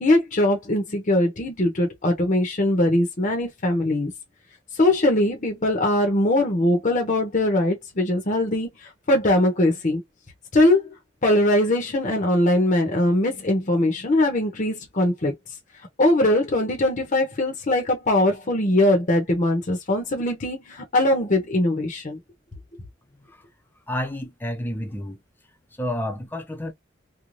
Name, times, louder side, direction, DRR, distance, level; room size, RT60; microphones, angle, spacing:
voice 1, 0.0-4.1 4.8-8.7 9.1-10.0 10.5-10.8 11.2-15.3 16.0-22.2, left 1 dB, 45° left, 0.8 m, -21 dB
voice 2, 23.1-23.4 23.9-25.2 25.8-26.7, left 1 dB, 10° left, 0.6 m, -30 dB
2.6 x 2.2 x 3.1 m
head